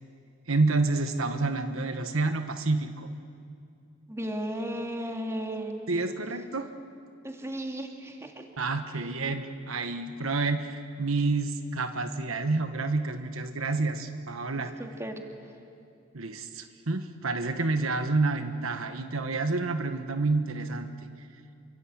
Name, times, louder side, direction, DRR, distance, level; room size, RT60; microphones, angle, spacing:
voice 1, 0.5-3.1 5.9-6.7 8.6-14.8 16.1-20.9, right 3 dB, 85° right, 8 dB, 1.3 m, -29 dB
voice 2, 4.1-6.0 7.2-8.4 9.0-9.1 14.6-15.2, equal, 15° right, 2 dB, 2.5 m, -35 dB
28.0 x 24.0 x 8.7 m, 2.5 s
head